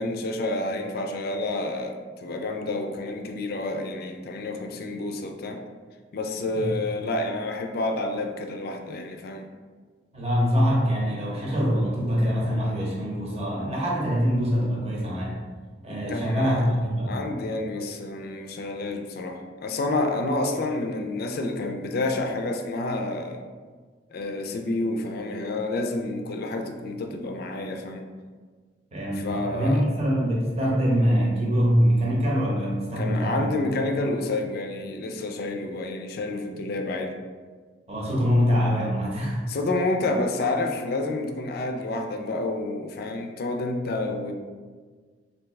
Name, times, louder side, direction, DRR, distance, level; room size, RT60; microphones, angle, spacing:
voice 1, 0.0-5.6 6.1-9.5 16.1-16.7 17.1-23.4 24.1-28.0 29.1-29.8 33.0-37.1 39.5-44.3, left 2 dB, 60° left, 4 dB, 0.4 m, -29 dB
voice 2, 10.1-15.4 15.8-17.2 28.9-33.5 37.9-39.4, equal, 35° right, -4 dB, 0.8 m, -24 dB
3.3 x 2.7 x 3.1 m, 1.5 s
head